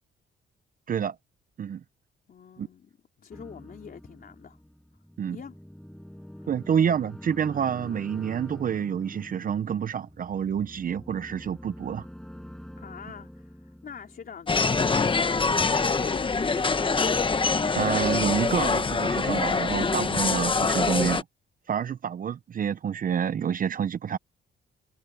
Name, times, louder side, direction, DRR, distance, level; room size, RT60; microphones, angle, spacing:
voice 1, 2.3-4.6 5.3-5.6 6.4-6.5 12.7-14.5 15.5-17.0, left 7 dB, 50° left, 3.9 m, -44 dB
sound 1, 3.3-15.0 15.4-16.5, equal, 5° left, 7.7 m, -46 dB
voice 2, 6.5-12.0 17.7-21.2 21.7-24.2, right 8 dB, 45° right, 0.7 m, -28 dB
sound 2, 14.5-21.2, left 4 dB, 25° left, 1.1 m, -24 dB
cardioid pair, 90°, 20 cm